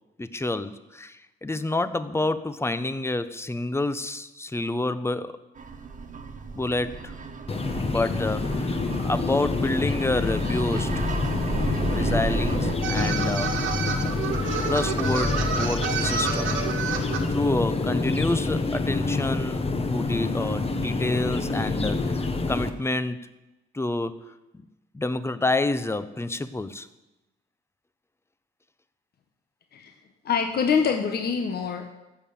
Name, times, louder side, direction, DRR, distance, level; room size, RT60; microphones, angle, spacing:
voice 1, 0.2-5.4 6.6-7.2 7.8-11.1 11.8-13.7 14.6-16.6 17.0-19.6 19.9-23.2 23.7-24.7 24.9-26.9, left 2 dB, 15° left, 13 dB, 0.8 m, -28 dB
sound 1, 5.6-12.7, right 4 dB, 40° right, 1.5 m, -34 dB
sound 2, 7.5-22.7, left 3 dB, 30° left, 1.2 m, -27 dB
sound 3, 12.8-17.2, right 6 dB, 85° right, 2.0 m, -29 dB
voice 2, 30.2-31.9, left 6 dB, 55° left, 5 dB, 1.2 m, -25 dB
15.0 x 6.8 x 7.1 m, 1.0 s
cardioid pair, 90°, 20 cm